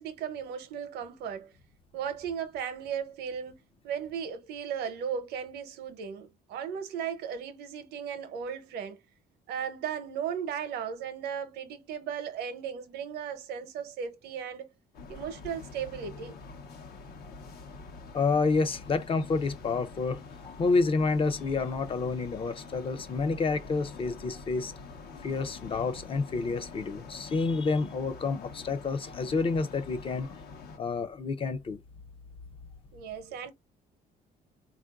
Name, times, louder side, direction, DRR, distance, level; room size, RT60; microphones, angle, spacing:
voice 1, 0.0-1.5 1.9-9.0 9.5-14.7 15.1-16.3 32.9-33.5, right 8 dB, 80° right, 0.7 m, -36 dB
sound 1, 14.9-30.8, left 4 dB, 65° left, 0.9 m, -46 dB
voice 2, 18.1-24.7 25.2-30.3 30.8-31.8, left 4 dB, 30° left, 0.5 m, -29 dB
3.7 x 2.5 x 2.3 m
cardioid pair, 110°, 17 cm